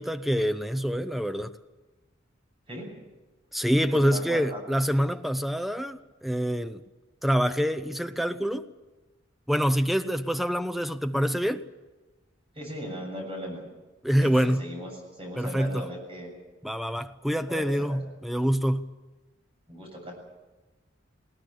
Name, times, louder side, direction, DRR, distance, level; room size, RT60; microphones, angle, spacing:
voice 1, 0.0-1.5 3.5-6.8 7.2-8.6 9.5-11.6 14.0-14.7 15.4-15.8 16.6-18.9, equal, ahead, 11 dB, 0.7 m, -26 dB
voice 2, 3.9-4.6 12.5-13.6 14.2-16.3 17.5-18.0 19.7-20.2, equal, 30° right, 1 dB, 7.2 m, -38 dB
20.0 x 18.5 x 8.6 m, 1.1 s
head